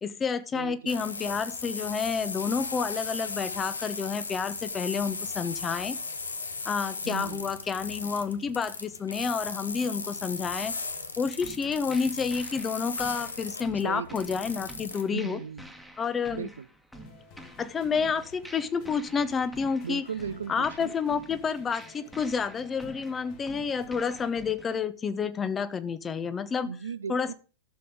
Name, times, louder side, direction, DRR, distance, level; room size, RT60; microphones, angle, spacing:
voice 1, 0.0-6.0 6.6-10.7 11.2-15.4 16.0-16.5 17.6-20.0 20.5-26.7 27.1-27.3, left 5 dB, 20° left, 0.8 m, -29 dB
voice 2, 0.5-1.0 7.0-7.5 13.8-14.4 15.1-15.7 16.3-16.7 19.8-20.9 26.6-27.3, right 6 dB, 70° right, 0.5 m, -37 dB
sound 1, 0.9-15.0, left 4 dB, 75° left, 1.0 m, -37 dB
sound 2, 11.4-24.8, equal, 5° left, 1.5 m, -49 dB
sound 3, 16.9-24.3, left 5 dB, 45° left, 1.7 m, -54 dB
14.0 x 6.9 x 3.8 m
figure-of-eight pair, 90°, 0 cm